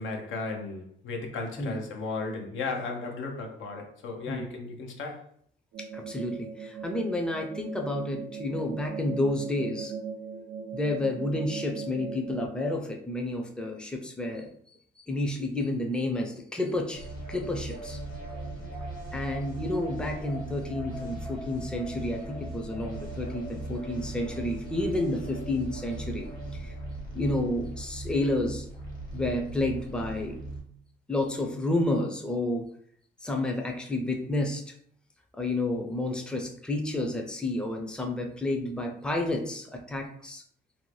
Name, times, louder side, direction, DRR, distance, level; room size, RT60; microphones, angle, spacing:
voice 1, 0.0-5.3, left 3 dB, 80° left, 3 dB, 0.6 m, -35 dB
sound 1, 5.7-12.5, right 5 dB, 80° right, 0.4 m, -39 dB
voice 2, 5.8-9.9 10.7-14.5 15.1-18.0 19.1-26.7 27.1-28.7 29.1-30.4 31.1-32.6 33.2-34.6 35.4-40.4, left 1 dB, 5° left, 2 dB, 0.4 m, -30 dB
sound 2, 16.9-30.6, right 2 dB, 45° left, 1.1 m, -38 dB
2.6 x 2.1 x 3.1 m, 0.63 s
cardioid pair, 90°, 20 cm